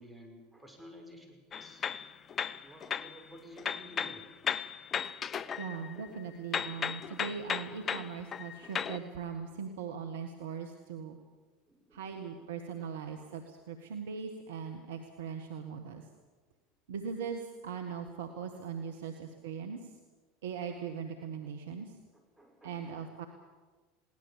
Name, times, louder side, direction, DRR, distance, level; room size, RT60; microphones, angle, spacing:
voice 1, 0.0-1.8 2.6-4.3 5.5-5.7 11.7-12.2 22.4-23.0, equal, 5° right, 1 dB, 5.7 m, -52 dB
sound 1, 1.5-3.2 3.6-6.2 6.5-9.0, left 7 dB, 35° left, 0.7 m, -36 dB
voice 2, 5.6-11.2 11.9-16.1 16.9-19.9 20.4-22.0 22.6-23.3, right 6 dB, 75° right, 5 dB, 1.6 m, -40 dB
21.5 x 18.0 x 7.4 m, 1.3 s
hypercardioid pair, 80°, 0 cm